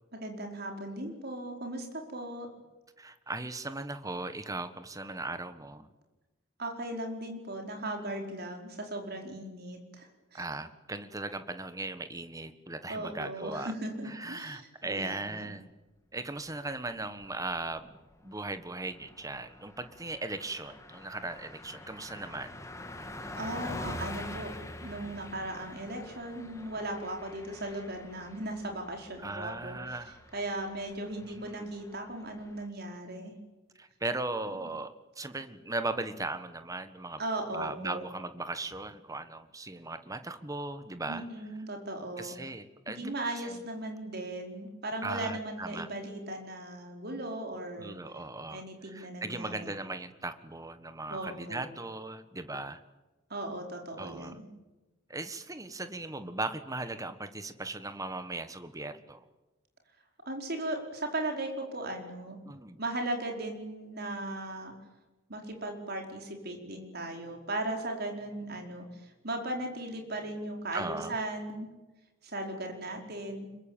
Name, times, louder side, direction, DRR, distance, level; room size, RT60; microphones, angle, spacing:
voice 1, 0.1-2.5 6.6-10.4 12.9-15.4 23.3-24.5 24.8-29.8 30.3-33.3 37.2-38.0 41.1-42.3 42.9-48.0 48.5-49.7 51.1-51.6 53.3-54.3 60.2-62.4 62.8-64.7 65.3-71.7 72.2-73.5, right 1 dB, 50° right, 3 dB, 4.9 m, -37 dB
voice 2, 3.0-5.9 10.3-13.7 14.0-15.7 16.1-22.5 29.2-30.2 31.2-31.7 33.7-37.2 37.5-41.3 42.2-43.6 45.0-45.9 47.8-52.8 54.0-54.4 55.1-59.3 62.4-62.8 70.7-71.2, right 2 dB, 15° right, 11 dB, 1.4 m, -38 dB
Car passing by, 17.2-17.6 18.0-18.1 18.4-32.7, left 1 dB, 15° left, 2.1 m, -45 dB
26.0 x 23.0 x 8.8 m, 1.1 s
head